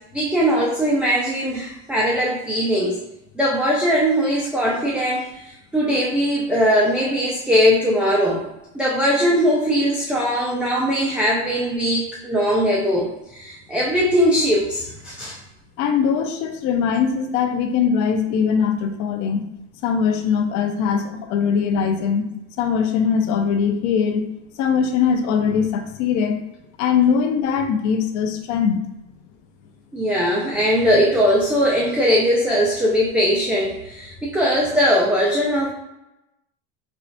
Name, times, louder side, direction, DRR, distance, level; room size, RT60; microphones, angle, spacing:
voice 1, 0.1-3.0 3.4-8.4 8.7-15.4 29.9-35.7, equal, 5° right, -4 dB, 0.3 m, -20 dB
voice 2, 15.8-19.4 19.8-22.3 22.6-24.3 24.6-26.4 26.8-28.8, left 6 dB, 55° left, 5 dB, 0.6 m, -21 dB
4.5 x 2.4 x 2.5 m, 0.90 s
supercardioid pair, 130°, 36 cm